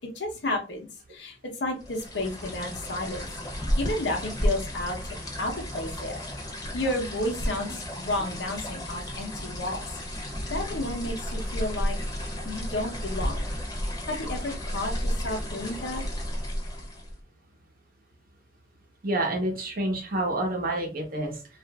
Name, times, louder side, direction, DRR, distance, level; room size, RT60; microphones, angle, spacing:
voice 1, 0.1-6.2 6.7-10.0 10.5-12.0 12.4-13.5 14.1-16.0, left 1 dB, 75° left, 2 dB, 0.8 m, -32 dB
sound 1, 1.8-17.2, equal, 20° left, 0.8 m, -32 dB
voice 2, 19.0-21.6, right 1 dB, 55° right, 2 dB, 0.8 m, -29 dB
2.9 x 2.5 x 2.3 m, 0.34 s
head